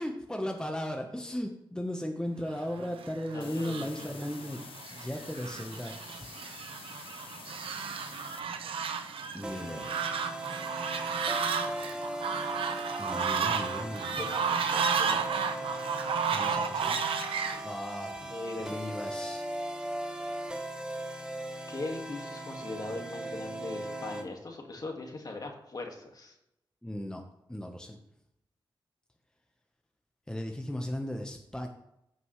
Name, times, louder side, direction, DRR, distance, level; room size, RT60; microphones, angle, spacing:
voice 1, 0.0-6.3 9.3-9.9 13.0-14.3 16.3-17.0 17.6-18.2 18.6-19.4 26.8-27.2 27.5-28.0 30.3-31.7, equal, 10° left, 3 dB, 1.2 m, -36 dB
Fowl, 2.8-17.6, right 6 dB, 85° right, 0.8 m, -33 dB
voice 2, 3.3-4.1 14.1-15.7 17.5-17.6 18.2-19.0 21.7-26.4, left 2 dB, 45° left, 2 dB, 2.0 m, -40 dB
sound 1, 3.4-8.4, left 8 dB, 85° left, 0.6 m, -49 dB
sound 2, 9.4-24.3, right 1 dB, 10° right, 1.3 m, -38 dB
15.0 x 5.4 x 3.3 m, 0.80 s
cardioid pair, 65°, 9 cm